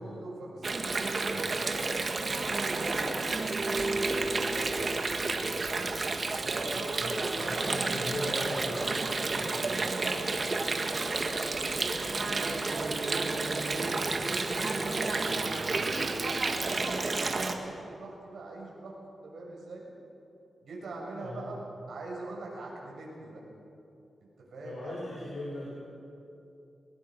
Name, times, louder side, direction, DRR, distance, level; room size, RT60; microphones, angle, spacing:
voice 1, 0.0-5.0 6.4-7.9 8.8-11.7 12.0-18.9 19.2-19.8 20.6-21.6 21.9-23.4 24.5-25.0, right 2 dB, 80° right, -3 dB, 6.5 m, -42 dB
Water, 0.6-17.5, right 3 dB, 45° right, 1.7 m, -31 dB
voice 2, 6.7-9.8 21.2-21.6 24.6-25.7, left 1 dB, 65° left, -5 dB, 4.9 m, -39 dB
22.0 x 20.5 x 6.1 m, 2.8 s
wide cardioid pair, 95°, 0 cm